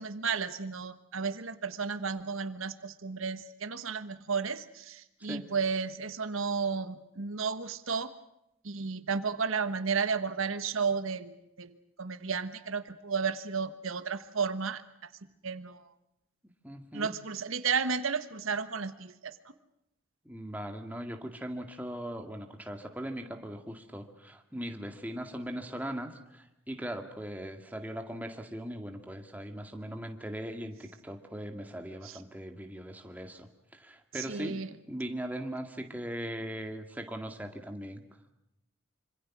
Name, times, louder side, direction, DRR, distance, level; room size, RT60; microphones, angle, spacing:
voice 1, 0.0-8.1 8.6-15.1 15.4-15.8 16.9-19.4 32.0-32.2 34.1-34.7, right 5 dB, 80° right, 11 dB, 1.3 m, -33 dB
voice 2, 16.6-17.1 20.3-34.6 34.9-38.0, equal, 10° right, 4 dB, 2.1 m, -39 dB
26.0 x 25.5 x 6.1 m, 0.83 s
head